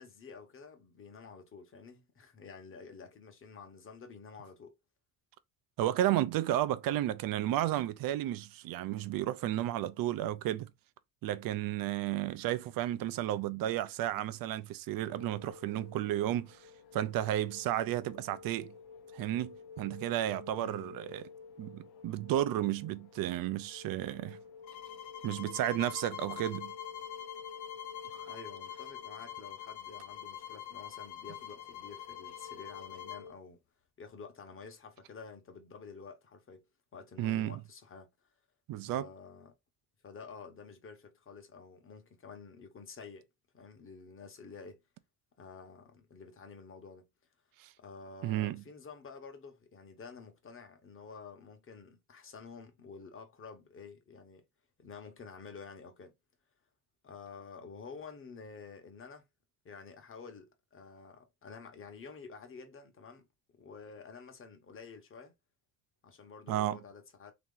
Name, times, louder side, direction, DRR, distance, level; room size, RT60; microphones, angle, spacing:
voice 1, 0.0-4.7 20.6-21.0 28.3-33.6 34.0-36.6 36.9-38.1 38.8-39.5 40.0-43.3 43.5-44.8 45.4-47.1 47.8-54.4 54.8-56.1 57.0-59.2 59.6-63.3 63.6-65.3 66.0-67.3, left 5 dB, 35° left, 1.1 m, -50 dB
voice 2, 5.8-10.7 11.2-16.6 16.9-18.7 19.1-21.3 21.6-24.4 25.2-26.7 28.1-28.3 37.2-37.6 38.7-39.1 47.6-47.7 48.2-48.6 66.5-66.8, right 13 dB, 65° right, 0.5 m, -32 dB
sound 1, 15.0-33.3, left 5 dB, 85° left, 0.8 m, -52 dB
sound 2, 24.6-33.3, left 11 dB, 50° left, 0.7 m, -45 dB
3.0 x 2.9 x 3.7 m
cardioid pair, 115°, 37 cm